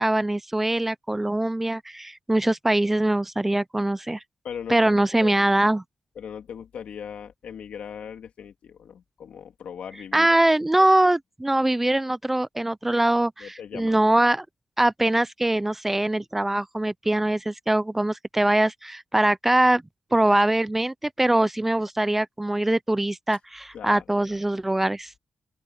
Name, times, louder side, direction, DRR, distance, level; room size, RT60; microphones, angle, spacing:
voice 1, 0.0-4.2 4.7-5.8 10.1-14.5 14.8-19.8 20.1-25.2, right 1 dB, 10° right, 0.4 m, -22 dB
voice 2, 4.4-5.5 6.2-10.3 10.8-10.9 13.4-14.0 23.7-24.0, left 8 dB, 80° left, 2.7 m, -39 dB
open air
wide cardioid pair, 145°, 2 cm